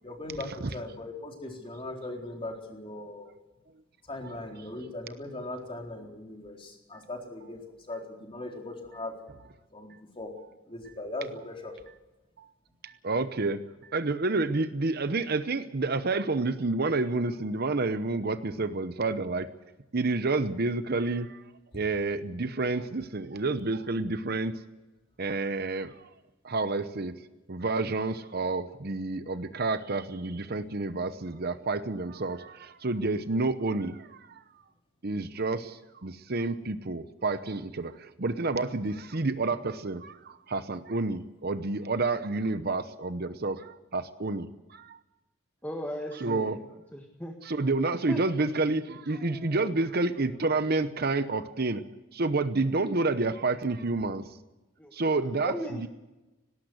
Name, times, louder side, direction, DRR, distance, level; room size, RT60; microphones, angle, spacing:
voice 1, 0.0-3.3 4.1-7.6 7.9-9.1 9.7-9.9 10.2-10.3 10.7-11.7, left 2 dB, 25° left, 1 dB, 4.0 m, -39 dB
voice 2, 12.8-19.5 19.9-21.4 21.7-24.6 25.2-26.1 26.4-27.1 27.5-34.2 35.0-45.0 46.1-46.6 47.4-51.9 52.1-54.3 54.9-55.9, right 3 dB, 50° right, 12 dB, 0.9 m, -29 dB
voice 3, 45.6-46.6 46.9-47.3 47.9-48.5 49.1-49.7 54.8-55.9, equal, 10° left, 2 dB, 1.7 m, -38 dB
18.5 x 18.5 x 8.0 m, 1.0 s
head